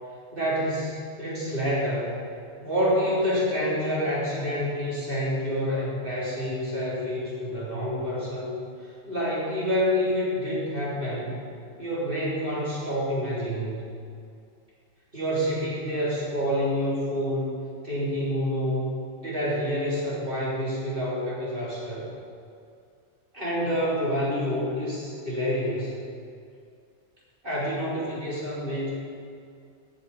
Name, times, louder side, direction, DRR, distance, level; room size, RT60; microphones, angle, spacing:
voice 1, 0.3-2.2 2.6-8.6 9.1-11.4 11.8-13.9 15.1-17.6 17.8-18.9 19.2-22.1 23.3-26.0 27.4-28.9, equal, 50° right, -8 dB, 3.7 m, -28 dB
9.0 x 6.8 x 8.4 m, 2.4 s
omnidirectional pair, 1.2 m